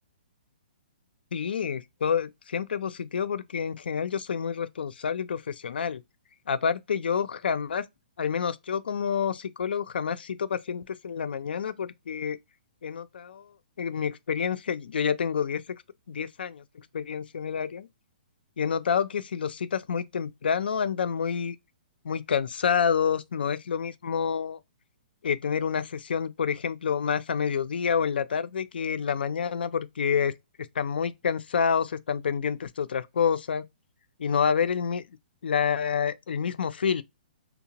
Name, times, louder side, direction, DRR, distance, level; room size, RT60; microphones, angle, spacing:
voice 1, 1.3-6.0 6.5-7.8 8.2-12.4 12.8-13.5 13.8-15.6 16.1-16.6 16.9-17.9 18.6-21.6 22.0-24.6 25.2-30.3 30.8-33.6 34.2-35.0 35.4-37.0, left 7 dB, 80° left, 0.4 m, -28 dB
2.7 x 2.1 x 2.8 m
hypercardioid pair, 165°, 5 cm